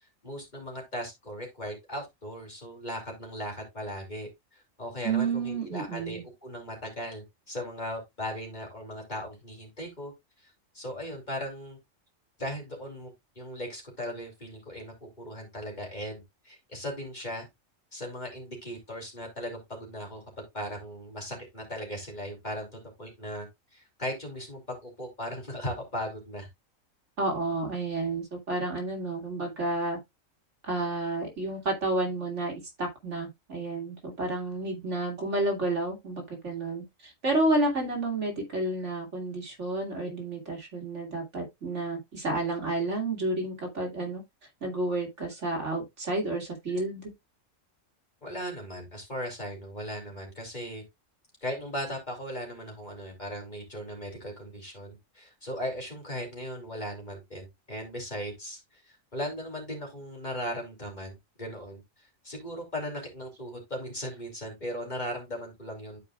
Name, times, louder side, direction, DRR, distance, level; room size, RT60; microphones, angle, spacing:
voice 1, 0.2-10.1 10.4-11.8 12.4-17.5 17.9-20.2 20.5-26.5 48.2-50.8 51.4-66.0, equal, 35° left, 3.1 m, -38 dB
voice 2, 5.0-6.2 27.2-30.0 30.6-32.5 32.8-44.2 44.6-47.1, right 2 dB, 60° right, 2.7 m, -30 dB
12.5 x 4.9 x 2.4 m
omnidirectional pair, 1.4 m